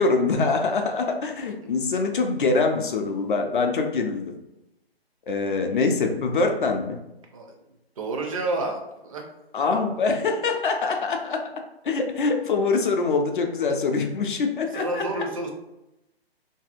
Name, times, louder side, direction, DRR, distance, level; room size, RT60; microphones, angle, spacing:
voice 1, 0.0-4.3 5.3-7.0 9.5-11.4 11.8-15.0, left 4 dB, 55° left, 4 dB, 0.4 m, -24 dB
voice 2, 8.0-9.2 14.7-15.5, right 2 dB, 35° right, 2 dB, 0.5 m, -29 dB
2.6 x 2.6 x 2.4 m, 0.92 s
figure-of-eight pair, 140°, 31 cm